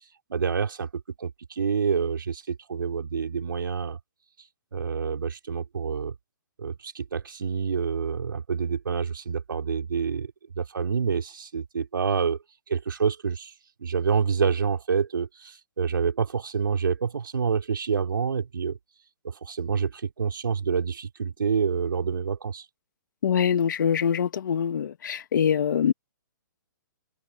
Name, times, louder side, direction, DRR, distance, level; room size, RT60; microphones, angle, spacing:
voice 1, 0.3-4.0 4.7-6.1 6.6-12.4 12.7-13.5 13.8-18.8 19.2-22.7, right 6 dB, 85° right, 4.0 m, -27 dB
voice 2, 23.2-25.9, left 8 dB, 65° left, 2.7 m, -24 dB
hypercardioid pair, 150°, 11 cm